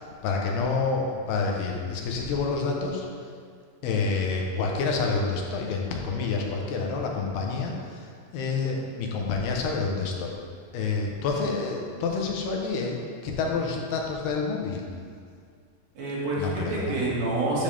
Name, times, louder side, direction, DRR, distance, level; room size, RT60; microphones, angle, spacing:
voice 1, 0.0-3.1 3.8-10.3 10.7-14.9 16.4-17.0, left 4 dB, 80° left, 0 dB, 3.1 m, -28 dB
voice 2, 16.0-17.6, right 2 dB, 70° right, -7 dB, 4.0 m, -28 dB
13.0 x 7.2 x 3.5 m, 2.1 s
omnidirectional pair, 4.6 m